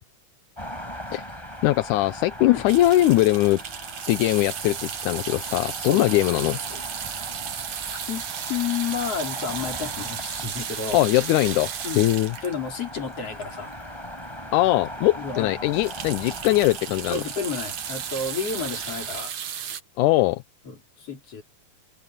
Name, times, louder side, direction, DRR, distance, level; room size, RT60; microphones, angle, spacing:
sound 1, 0.6-19.2, equal, 10° left, 5.6 m, -40 dB
voice 1, 1.6-3.6 4.1-6.6 10.9-11.7 12.0-12.3 14.5-17.2 20.0-20.4, left 16 dB, 80° left, 2.2 m, -21 dB
sound 2, 2.7-14.0 14.5-14.6 14.8-15.0 15.3-19.8, right 9 dB, 65° right, 2.9 m, -34 dB
voice 2, 5.8-6.8 7.8-11.0 11.8-12.1 12.4-13.7 15.1-15.5 17.1-19.3 20.6-21.4, left 6 dB, 50° left, 4.9 m, -31 dB
omnidirectional pair, 3.5 m